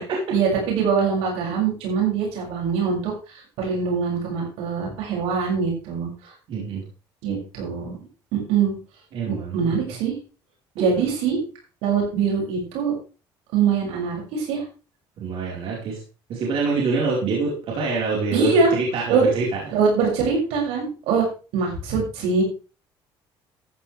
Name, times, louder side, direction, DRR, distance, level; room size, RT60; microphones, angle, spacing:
voice 1, 0.3-3.1 3.6-6.1 7.2-8.0 8.3-8.7 9.3-10.2 10.8-11.4 11.8-12.9 13.5-14.6 18.3-18.7 19.1-19.2 19.7-21.3 21.5-22.4, right 5 dB, 90° right, -1 dB, 7.1 m, -23 dB
voice 2, 6.5-6.8 9.1-9.8 10.8-10.9 15.2-16.0 16.3-19.6, right 4 dB, 65° right, -3 dB, 4.8 m, -26 dB
14.5 x 10.0 x 3.5 m, 0.34 s
cardioid pair, 115°, 10 cm